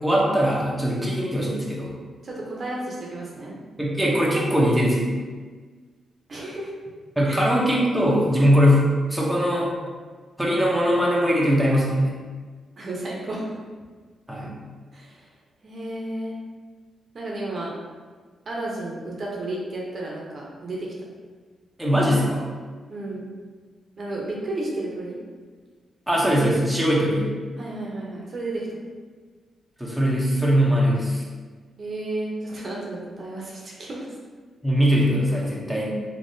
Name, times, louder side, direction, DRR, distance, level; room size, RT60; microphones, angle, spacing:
voice 1, 0.0-1.9 3.8-5.1 7.2-9.7 10.4-12.1 14.3-14.5 21.8-22.4 26.1-27.2 29.8-31.2 34.6-35.9, equal, 5° right, -5 dB, 0.8 m, -21 dB
voice 2, 2.2-3.5 6.3-6.7 7.3-7.4 12.8-13.4 14.9-15.3 15.6-16.4 17.1-17.7 18.5-20.9 22.9-23.3 24.0-25.2 27.6-28.7 31.8-34.1, right 2 dB, 50° right, -3 dB, 0.7 m, -32 dB
3.5 x 2.8 x 2.7 m, 1.5 s
cardioid pair, 80°, 0 cm